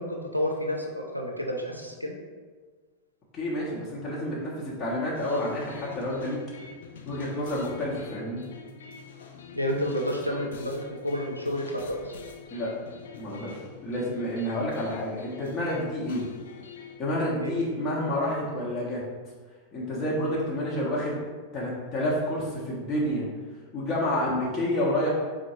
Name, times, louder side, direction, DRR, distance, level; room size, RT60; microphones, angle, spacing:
voice 1, 0.0-2.2 9.5-12.1 17.4-17.5, equal, 90° right, 1 dB, 0.4 m, -30 dB
voice 2, 3.3-6.4 7.0-8.4 12.5-12.7 13.1-16.2 17.0-19.0 19.7-21.2 21.5-23.2 23.7-25.1, left 1 dB, 30° left, -6 dB, 0.8 m, -29 dB
sound 1, 5.1-17.0, left 6 dB, 65° left, 0.4 m, -45 dB
4.4 x 2.1 x 2.9 m, 1.4 s
figure-of-eight pair, 90°, 0 cm